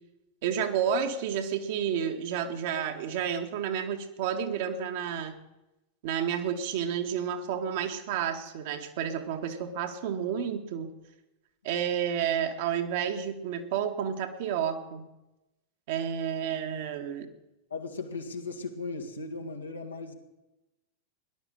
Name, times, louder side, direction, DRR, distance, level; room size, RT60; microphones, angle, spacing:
voice 1, 0.4-5.3 6.0-10.9 11.6-15.1 15.9-17.3, right 8 dB, 50° right, 5 dB, 1.7 m, -30 dB
voice 2, 17.7-20.1, left 3 dB, 75° left, 3 dB, 1.9 m, -37 dB
18.0 x 11.5 x 6.7 m, 0.96 s
figure-of-eight pair, 90°, 0 cm